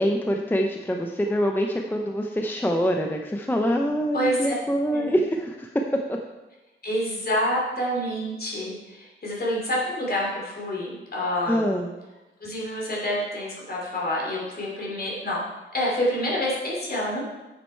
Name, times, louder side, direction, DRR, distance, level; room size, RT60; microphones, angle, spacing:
voice 1, 0.0-5.7 6.1-6.2 11.5-11.9, equal, 10° left, 3 dB, 0.5 m, -25 dB
voice 2, 4.1-4.5 4.9-5.2 6.8-11.8 12.4-15.4 15.7-17.2, equal, 45° left, -4 dB, 3.0 m, -27 dB
8.6 x 7.5 x 4.5 m, 1.1 s
wide cardioid pair, 150°, 21 cm